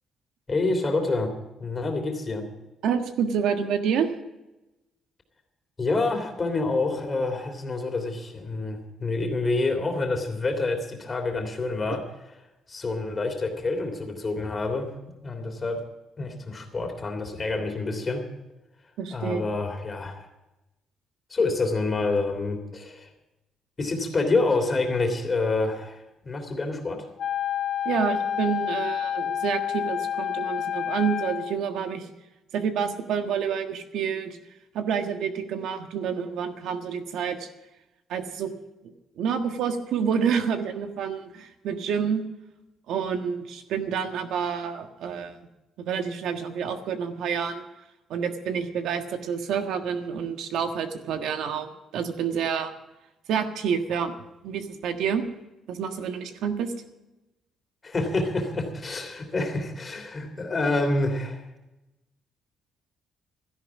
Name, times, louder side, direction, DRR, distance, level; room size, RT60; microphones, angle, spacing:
voice 1, 0.5-1.3 1.6-2.4 5.8-12.0 12.7-14.9 15.2-15.8 16.2-18.2 19.1-20.2 21.3-23.1 23.8-27.0 57.8-61.4, left 3 dB, 25° left, 5 dB, 3.1 m, -27 dB
voice 2, 2.8-4.1 19.0-19.4 27.8-32.1 32.5-34.4 34.7-37.5 38.1-38.5 38.8-42.2 42.9-45.4 45.8-47.6 48.1-52.7 53.3-54.1 54.4-55.2 55.7-56.7, right 7 dB, 75° right, 6 dB, 1.5 m, -28 dB
Wind instrument woodwind instrument, 27.2-31.6, left 9 dB, 60° left, 1.1 m, -29 dB
17.0 x 13.0 x 5.0 m, 0.98 s
cardioid pair, 145°, 0 cm